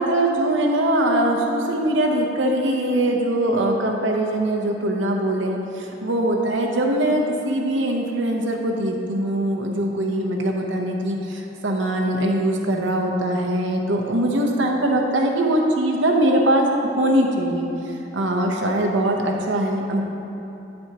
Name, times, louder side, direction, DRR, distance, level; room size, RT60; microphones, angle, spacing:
voice 1, 0.0-16.7 17.0-17.7 18.1-20.0, right 1 dB, 80° right, 1 dB, 0.9 m, -22 dB
9.6 x 7.7 x 2.9 m, 2.9 s
head